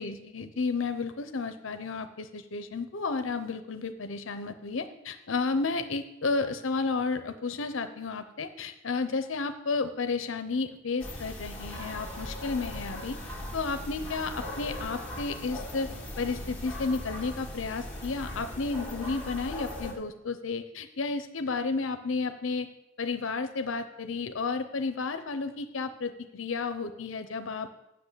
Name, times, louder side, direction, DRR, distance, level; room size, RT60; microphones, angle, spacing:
voice 1, 0.0-13.2 13.5-15.9 16.2-22.7 23.0-27.7, left 4 dB, 75° left, 9 dB, 0.7 m, -32 dB
sound 1, 11.0-19.9, left 1 dB, 5° left, 1.8 m, -39 dB
8.0 x 6.6 x 8.3 m, 0.88 s
head